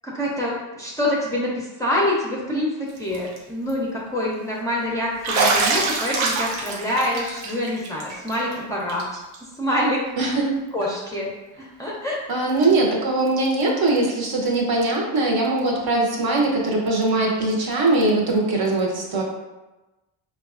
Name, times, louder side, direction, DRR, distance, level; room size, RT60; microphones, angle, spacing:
voice 1, 0.0-9.0 9.6-10.1 10.7-11.3 11.6-12.2, left 1 dB, 5° left, -6 dB, 0.5 m, -26 dB
Bathtub (filling or washing), 3.0-3.4 3.7-3.8 5.2-8.6 8.9-9.0 9.3-9.4 10.8-10.9 12.6-12.7, right 3 dB, 85° right, 0.7 m, -25 dB
voice 2, 10.2-10.5 12.3-19.2, right 2 dB, 50° right, -1 dB, 0.8 m, -21 dB
4.3 x 2.3 x 2.4 m, 1.1 s
cardioid pair, 110°, 46 cm